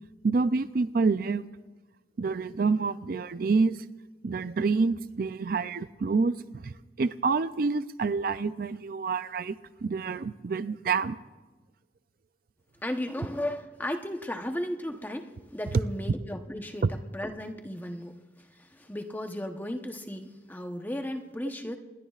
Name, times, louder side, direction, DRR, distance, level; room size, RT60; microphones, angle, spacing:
voice 1, 0.2-1.5 2.2-3.8 4.2-9.5 9.8-11.2, right 4 dB, 50° right, 13 dB, 0.4 m, -27 dB
voice 2, 12.8-18.5 18.7-21.8, left 1 dB, 10° left, 5 dB, 0.9 m, -35 dB
27.0 x 20.5 x 2.4 m, 1.2 s
head